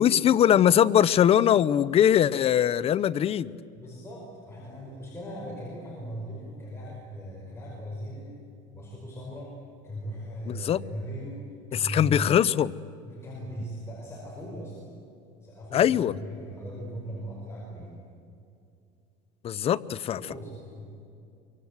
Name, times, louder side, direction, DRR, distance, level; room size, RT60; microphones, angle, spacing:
voice 1, 0.0-3.5 10.5-10.8 11.8-12.7 15.7-16.1 19.4-20.2, left 10 dB, 30° left, 17 dB, 0.6 m, -21 dB
voice 2, 3.7-8.4 8.7-9.6 9.8-11.4 11.7-12.4 13.0-14.8 15.4-18.0 20.1-20.9, equal, 10° left, -4 dB, 5.0 m, -38 dB
24.5 x 24.0 x 8.0 m, 2.5 s
cardioid pair, 145°, 20 cm